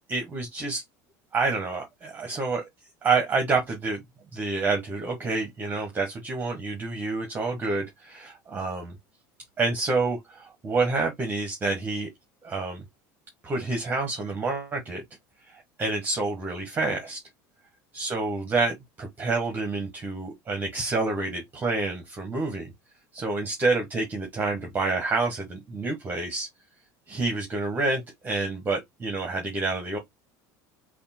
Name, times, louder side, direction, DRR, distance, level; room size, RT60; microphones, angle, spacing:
voice 1, 0.1-0.8 1.3-2.6 3.0-4.0 4.3-8.9 9.6-12.1 12.4-12.8 13.4-15.0 15.5-17.2 17.9-22.7 23.1-26.5 27.1-30.0, right 3 dB, 20° right, 1.1 m, -28 dB
3.4 x 2.4 x 4.2 m
supercardioid pair, 125°, 9 cm